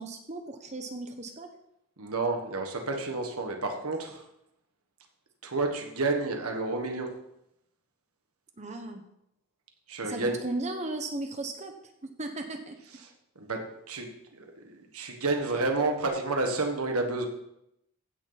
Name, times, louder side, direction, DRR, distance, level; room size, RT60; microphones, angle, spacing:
voice 1, 0.0-1.5 8.6-9.0 10.0-11.7 12.0-12.8, right 2 dB, 30° right, 5 dB, 1.0 m, -36 dB
voice 2, 2.0-4.2 5.4-7.1 9.9-10.4 13.3-17.3, right 3 dB, 85° right, 3 dB, 1.6 m, -30 dB
15.5 x 6.7 x 4.2 m, 0.80 s
head